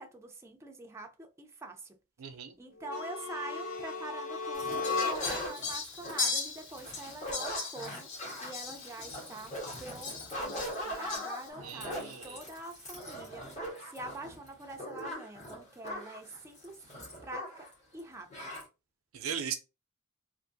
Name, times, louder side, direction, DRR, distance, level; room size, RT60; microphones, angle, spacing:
voice 1, 0.0-2.0 2.3-16.8 17.2-17.7 17.9-18.5, right 2 dB, 15° right, 0.5 m, -45 dB
voice 2, 2.2-2.5 11.6-12.4 19.1-19.5, right 8 dB, 85° right, 0.6 m, -38 dB
sound 1, 2.8-5.5, left 4 dB, 80° left, 0.7 m, -35 dB
sound 2, 4.5-17.7 18.0-18.1 18.3-18.6, equal, 35° left, 1.5 m, -41 dB
Fowl, 4.8-11.5, left 4 dB, 60° left, 1.0 m, -39 dB
3.5 x 2.5 x 2.6 m
head